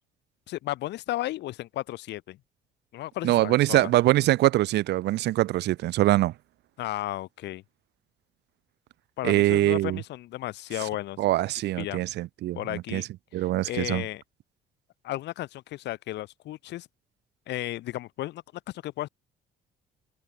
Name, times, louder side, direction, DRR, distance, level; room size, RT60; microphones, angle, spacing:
voice 1, 0.5-2.4 2.9-3.9 6.8-7.6 9.2-11.2 11.8-12.0 12.5-13.0 13.3-14.2 15.0-16.9 17.5-18.4 18.7-19.1, left 15 dB, 65° left, 0.5 m, -34 dB
voice 2, 3.2-6.3 9.2-10.0 11.2-13.1 13.3-14.0, right 16 dB, 65° right, 0.4 m, -23 dB
supercardioid pair, 75°, 19 cm